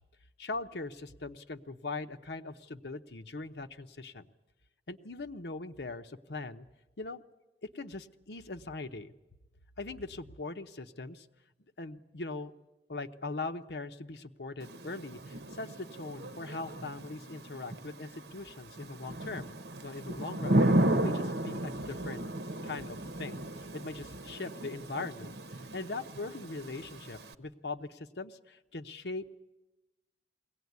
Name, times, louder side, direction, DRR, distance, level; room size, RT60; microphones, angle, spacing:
voice 1, 0.4-4.3 4.9-6.7 7.0-7.2 7.7-9.1 9.8-11.3 11.8-12.5 12.9-19.5 19.8-22.3 22.6-23.4 23.7-25.4 25.7-29.4, left 3 dB, 70° left, 7 dB, 0.9 m, -41 dB
Thunder / Rain, 14.6-27.3, right 1 dB, 70° right, 1.0 m, -34 dB
22.0 x 17.5 x 9.5 m, 1.1 s
head